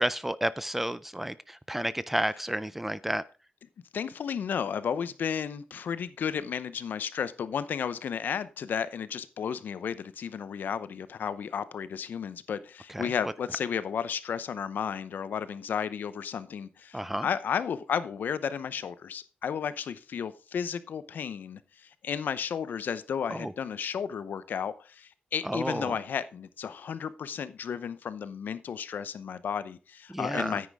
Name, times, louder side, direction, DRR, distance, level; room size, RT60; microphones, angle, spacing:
voice 1, 0.0-3.2 12.9-13.3 16.9-17.3 23.3-23.5 25.4-26.0 30.1-30.6, right 1 dB, 5° right, 17 dB, 0.4 m, -31 dB
voice 2, 3.9-30.7, left 7 dB, 65° left, 15 dB, 0.7 m, -33 dB
9.6 x 9.5 x 3.6 m, 0.33 s
wide cardioid pair, 155°, 3 cm